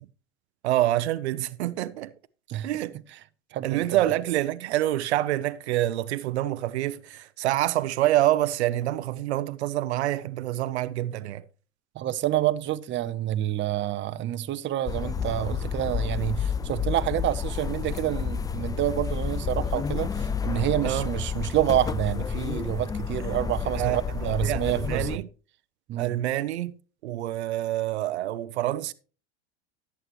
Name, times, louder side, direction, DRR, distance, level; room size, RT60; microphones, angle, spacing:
voice 1, 0.6-2.1 2.6-3.0 3.6-11.4 20.8-21.1 23.7-25.3 26.0-26.8 27.0-28.9, right 14 dB, 85° right, 0.7 m, -27 dB
voice 2, 3.5-3.8 11.9-25.2 25.9-26.2, right 13 dB, 35° right, 0.8 m, -28 dB
sound 1, 14.9-25.2, left 7 dB, 10° left, 0.4 m, -30 dB
14.0 x 8.5 x 3.1 m
hypercardioid pair, 105°, 33 cm